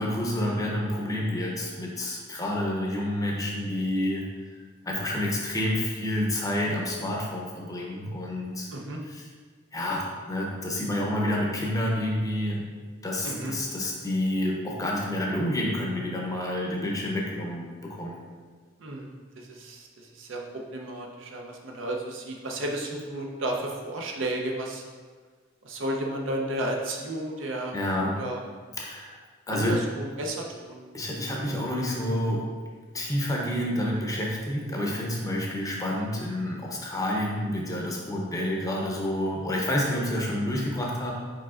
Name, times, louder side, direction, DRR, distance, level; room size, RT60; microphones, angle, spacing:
voice 1, 0.0-4.3 4.9-8.7 9.1-9.2 9.7-12.6 13.0-18.2 27.7-28.2 28.8-29.2 29.5-29.8 30.9-32.5 32.9-41.1, left 1 dB, 20° left, -2 dB, 0.6 m, -29 dB
voice 2, 13.2-13.6 18.8-24.8 25.6-28.4 29.5-30.8, right 1 dB, 70° right, 1 dB, 0.6 m, -33 dB
4.9 x 4.3 x 2.4 m, 1.5 s
head